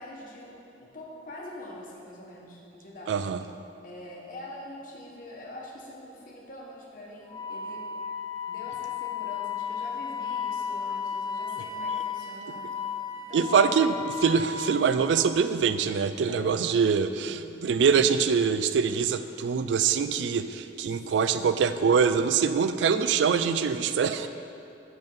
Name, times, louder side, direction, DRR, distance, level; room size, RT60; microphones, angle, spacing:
voice 1, 0.0-3.3 3.8-7.8 8.5-12.7 13.3-13.8 16.3-16.7 21.3-21.5, left 1 dB, 50° left, -3 dB, 1.1 m, -44 dB
voice 2, 3.1-3.4 13.3-24.3, right 6 dB, 75° right, 11 dB, 0.3 m, -24 dB
Wind instrument woodwind instrument, 7.3-15.5, left 7 dB, 25° left, 0.4 m, -34 dB
6.1 x 5.3 x 5.4 m, 2.7 s
head